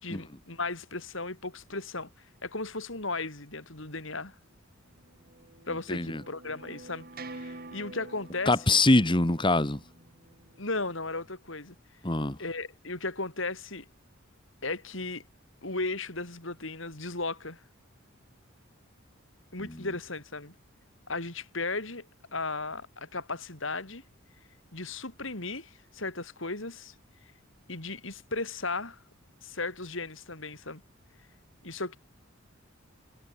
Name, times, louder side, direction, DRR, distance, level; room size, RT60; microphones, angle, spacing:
voice 1, 0.0-2.1 2.4-4.3 5.7-8.8 10.6-11.7 12.4-13.9 14.6-15.2 15.6-17.6 19.5-20.5 21.1-22.1 22.3-24.0 24.7-26.9 27.7-29.0 29.4-30.8 31.6-32.0, left 3 dB, 65° left, 4.4 m, -36 dB
sound 1, 4.9-10.6, right 2 dB, 45° right, 2.6 m, -47 dB
voice 2, 5.9-6.2 8.5-9.8 12.0-12.4, left 2 dB, 25° left, 1.6 m, -23 dB
head